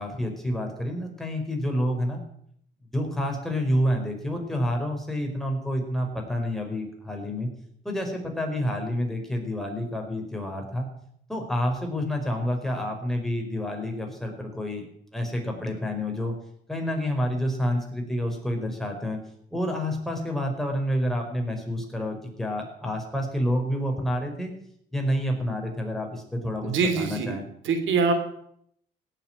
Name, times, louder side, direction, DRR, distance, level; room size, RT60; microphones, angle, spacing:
voice 1, 0.0-2.2 2.9-7.5 7.8-10.9 11.3-14.8 15.1-16.3 16.7-19.2 19.5-24.5 24.9-27.4, equal, ahead, 2 dB, 4.9 m, -28 dB
voice 2, 26.6-27.3 27.6-28.1, right 5 dB, 75° right, 6 dB, 3.0 m, -24 dB
17.0 x 8.0 x 9.1 m, 0.70 s
cardioid pair, 90°, 20 cm